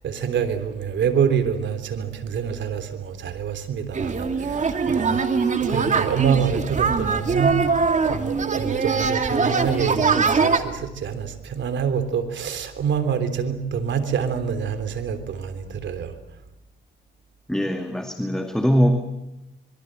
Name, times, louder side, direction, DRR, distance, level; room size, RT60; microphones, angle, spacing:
voice 1, 0.0-5.2 5.6-7.6 8.0-16.1, right 7 dB, 65° right, 3.4 m, -26 dB
sound 1, 3.9-10.6, right 5 dB, 40° right, 2.5 m, -22 dB
voice 2, 17.5-19.0, equal, 5° left, 2.3 m, -21 dB
26.0 x 23.5 x 7.7 m
cardioid pair, 90°, 20 cm